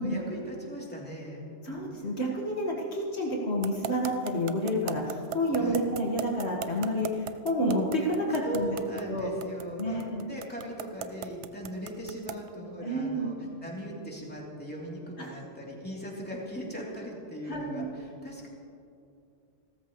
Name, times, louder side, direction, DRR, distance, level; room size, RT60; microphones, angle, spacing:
voice 1, 0.0-1.4 5.6-5.8 8.4-13.3 13.6-18.5, equal, 10° left, -4 dB, 3.2 m, -39 dB
voice 2, 1.6-8.8 9.1-9.3 9.8-10.3 12.8-13.3 15.2-15.3 17.5-17.9, equal, 65° left, -2 dB, 2.0 m, -29 dB
sound 1, 3.6-12.5, right 8 dB, 75° right, 0.9 m, -37 dB
29.5 x 13.5 x 3.2 m, 2.6 s
omnidirectional pair, 1.2 m